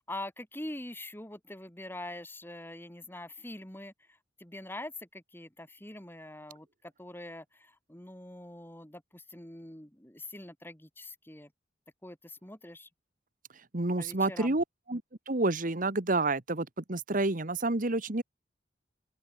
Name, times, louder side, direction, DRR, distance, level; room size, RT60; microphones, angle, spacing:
voice 1, 0.0-11.5 12.0-12.9 14.0-14.6, left 1 dB, 10° left, 3.3 m, -44 dB
voice 2, 13.7-15.0 15.3-18.2, right 2 dB, 45° right, 1.5 m, -29 dB
open air
head